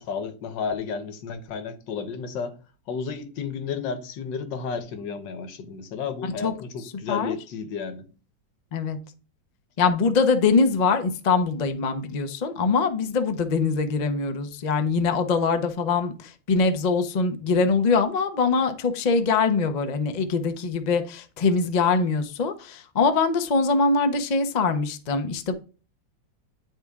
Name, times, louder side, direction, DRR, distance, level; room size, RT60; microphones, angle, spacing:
voice 1, 0.0-2.6 2.9-8.1, left 5 dB, 80° left, 1.6 m, -32 dB
voice 2, 9.8-25.5, left 4 dB, 50° left, 0.5 m, -23 dB
9.7 x 4.3 x 3.5 m
omnidirectional pair, 1.9 m